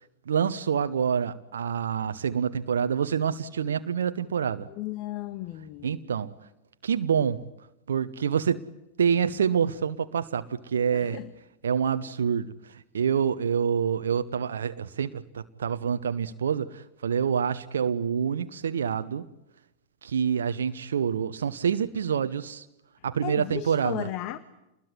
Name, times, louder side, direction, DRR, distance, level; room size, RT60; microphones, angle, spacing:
voice 1, 0.3-4.7 5.8-6.3 6.8-7.4 7.9-8.7 9.0-11.2 11.6-19.3 20.0-22.6 23.0-24.1, right 7 dB, 65° right, 1.0 m, -27 dB
voice 2, 4.8-5.9 10.9-11.3 23.2-24.4, left 14 dB, 40° left, 1.4 m, -35 dB
29.0 x 21.0 x 9.8 m
figure-of-eight pair, 90°, 0 cm